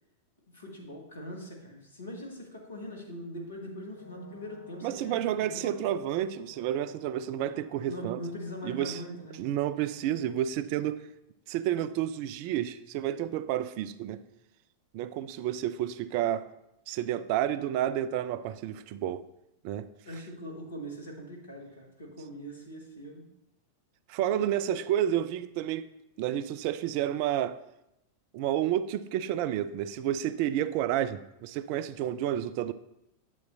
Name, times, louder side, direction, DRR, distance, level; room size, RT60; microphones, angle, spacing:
voice 1, 0.5-6.0 7.9-9.4 20.0-23.3, equal, 70° left, 1.8 m, -42 dB
Brass instrument, 3.9-10.0, equal, 70° right, 1.8 m, -54 dB
voice 2, 4.8-8.2 8.6-9.0 9.4-11.0 11.5-14.2 14.9-16.5 16.9-19.2 19.6-19.9 24.1-25.8 26.2-27.6 28.3-32.7, right 11 dB, 45° right, 0.3 m, -30 dB
9.2 x 7.8 x 2.7 m
figure-of-eight pair, 90°, 0 cm